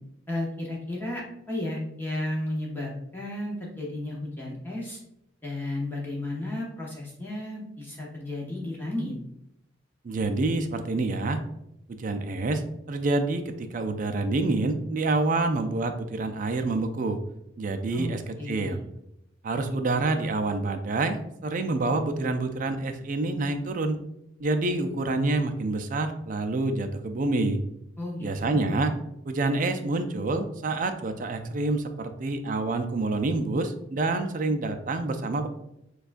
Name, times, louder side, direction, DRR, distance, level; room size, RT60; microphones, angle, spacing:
voice 1, 0.3-5.0 5.4-9.1 17.9-18.8 28.0-28.9, left 1 dB, 10° left, -4 dB, 0.7 m, -33 dB
voice 2, 10.0-11.4 11.9-12.6 12.9-17.2 17.6-18.8 19.4-24.0 24.4-27.6 28.2-28.9 29.2-35.5, right 2 dB, 45° right, 7 dB, 0.4 m, -27 dB
6.6 x 2.3 x 2.5 m, 0.82 s
head